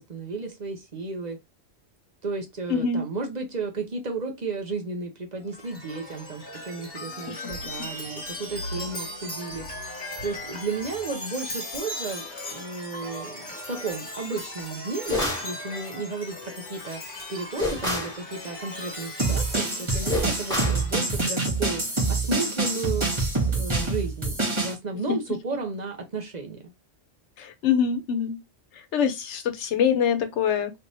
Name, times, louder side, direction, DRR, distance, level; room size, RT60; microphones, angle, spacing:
voice 1, 0.0-1.4 2.2-23.1 23.5-26.7, right 3 dB, 45° right, 0.8 m, -33 dB
voice 2, 2.7-3.0 7.3-7.4 27.4-28.4 28.9-30.7, left 7 dB, 90° left, 1.0 m, -24 dB
Chime, 5.5-21.3, left 1 dB, 45° left, 1.7 m, -38 dB
sound 1, 15.1-15.5 17.6-18.2 20.1-20.8, left 2 dB, 5° left, 1.6 m, -28 dB
sound 2, 19.2-24.7, right 3 dB, 25° right, 1.4 m, -26 dB
3.3 x 3.0 x 2.6 m
omnidirectional pair, 1.2 m